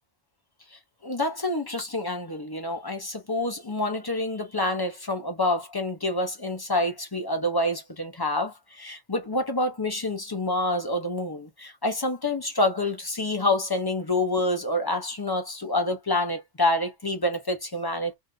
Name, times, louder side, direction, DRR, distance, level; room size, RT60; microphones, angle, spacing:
voice 1, 0.7-18.2, left 2 dB, 25° left, 0.6 m, -27 dB
2.7 x 2.4 x 3.7 m
omnidirectional pair, 1.1 m